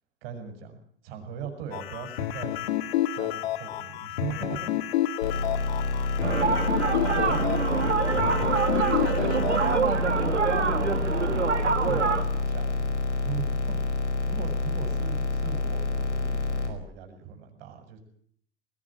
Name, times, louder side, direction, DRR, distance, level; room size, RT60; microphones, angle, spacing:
voice 1, 0.2-0.8 1.0-4.8 5.3-5.4 6.3-6.4 7.3-7.6 9.2-9.4 11.7-13.0 13.2-13.8 14.3-18.0, right 8 dB, 55° right, 6 dB, 7.1 m, -40 dB
sound 1, 1.7-9.8, left 12 dB, 65° left, 2.0 m, -30 dB
sound 2, 5.2-16.7, left 3 dB, 85° left, 5.1 m, -28 dB
sound 3, 6.2-12.2, right 5 dB, 90° right, 2.3 m, -26 dB
voice 2, 8.5-10.3, right 12 dB, 40° right, 9 dB, 3.1 m, -40 dB
21.0 x 18.5 x 8.9 m, 0.62 s
hypercardioid pair, 100°, 34 cm